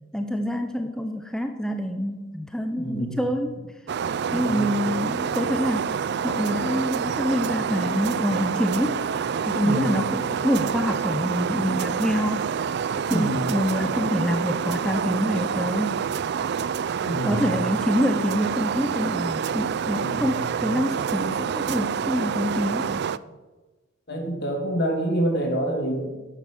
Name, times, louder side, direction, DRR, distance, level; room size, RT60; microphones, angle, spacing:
voice 1, 0.1-3.6 4.3-5.9 6.2-9.1 9.5-16.0 17.2-23.0, equal, 5° left, 5 dB, 0.7 m, -26 dB
voice 2, 2.8-3.2 4.3-4.7 9.6-10.0 13.1-13.6 17.0-17.4 20.0-20.3 24.1-26.2, right 1 dB, 60° left, 2 dB, 2.7 m, -27 dB
sound 1, 3.9-23.2, right 7 dB, 55° right, 0.4 m, -27 dB
11.0 x 8.2 x 7.8 m, 1.2 s
head